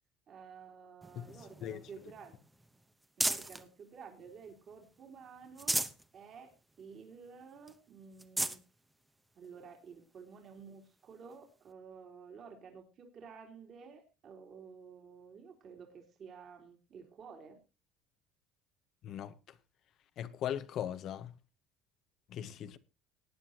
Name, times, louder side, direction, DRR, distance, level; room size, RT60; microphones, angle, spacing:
voice 1, 0.3-2.3 3.2-5.8 6.1-8.6 9.4-17.6, right 6 dB, 45° right, 3.4 m, -52 dB
sound 1, 1.0-3.7 4.2-5.0 5.4-6.1 6.5-6.6 7.0-7.1 7.7-7.8 8.1-8.6 9.4-9.5 11.3-11.4, right 1 dB, 10° right, 1.0 m, -37 dB
voice 2, 19.0-19.3 20.2-21.3 22.3-22.8, left 10 dB, 55° left, 1.0 m, -39 dB
19.0 x 9.8 x 2.9 m
supercardioid pair, 110°, 0 cm